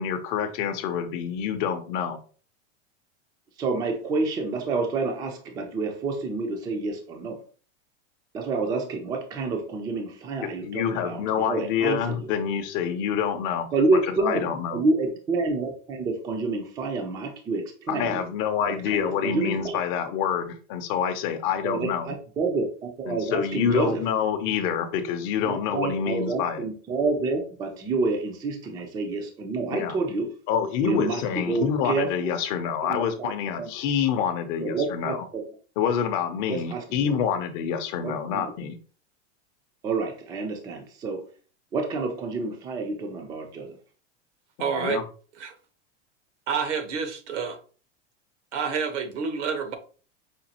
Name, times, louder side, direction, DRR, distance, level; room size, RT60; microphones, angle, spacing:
voice 1, 0.0-2.2 10.6-13.7 14.1-14.8 17.9-22.1 23.1-26.6 29.7-30.0 30.5-35.2 35.8-38.8 44.8-45.0, left 8 dB, 45° left, 0.6 m, -27 dB
voice 2, 3.6-7.4 8.3-11.2 11.5-12.3 13.7-18.2 18.7-19.8 21.6-24.0 25.4-30.4 30.8-32.3 32.8-33.7 34.6-35.4 36.5-37.1 38.0-38.5 39.8-41.2 41.7-43.7, right 3 dB, 10° right, 0.3 m, -28 dB
voice 3, 44.6-45.0 45.4-45.5 46.5-47.6 48.5-49.8, right 6 dB, 80° right, 1.0 m, -28 dB
5.1 x 2.4 x 2.8 m
supercardioid pair, 145°, 35 cm